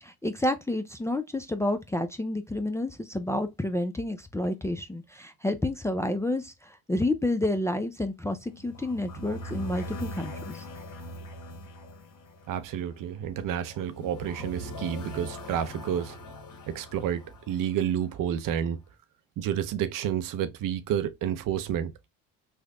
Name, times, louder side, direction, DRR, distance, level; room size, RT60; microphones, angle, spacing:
voice 1, 0.0-10.6, left 1 dB, 5° left, 0.5 m, -30 dB
sound 1, 8.3-18.4, left 1 dB, 50° left, 1.2 m, -42 dB
voice 2, 12.5-16.2 16.7-18.8 19.4-21.9, right 9 dB, 55° right, 0.6 m, -30 dB
3.3 x 2.2 x 3.6 m
hypercardioid pair, 70°, 39 cm